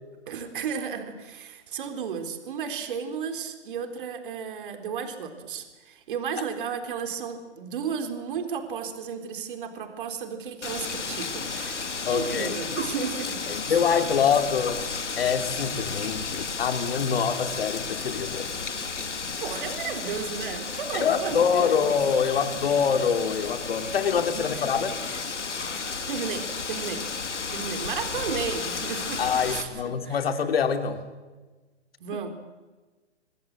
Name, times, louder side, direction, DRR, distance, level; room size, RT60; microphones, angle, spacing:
voice 1, 0.3-13.8 19.4-21.9 24.3-24.8 26.1-27.1 27.5-30.2 32.0-32.3, right 6 dB, 45° right, 7 dB, 3.9 m, -34 dB
Wind, 10.6-29.6, left 5 dB, 80° left, 3.3 m, -33 dB
voice 2, 12.1-12.5 13.5-14.8 15.2-18.5 20.9-24.9 29.2-31.0, left 7 dB, 55° left, 8 dB, 3.1 m, -25 dB
25.5 x 22.0 x 7.6 m, 1.2 s
hypercardioid pair, 140°, 35 cm